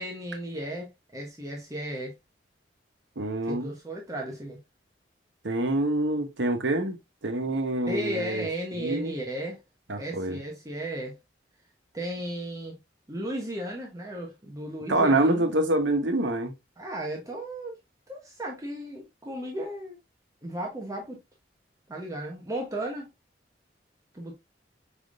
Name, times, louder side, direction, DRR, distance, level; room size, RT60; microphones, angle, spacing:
voice 1, 0.0-2.1 3.5-4.6 7.9-9.6 10.0-11.2 11.9-12.8 13.1-15.4 16.8-17.8 18.1-20.0 20.4-21.2 21.9-23.1 24.1-24.3, right 1 dB, 20° right, 0.9 m, -35 dB
voice 2, 3.2-3.7 5.4-7.0 7.2-8.5 8.8-9.1 9.9-10.4 14.9-16.5, right 2 dB, 85° right, 1.0 m, -26 dB
4.9 x 3.5 x 2.4 m
head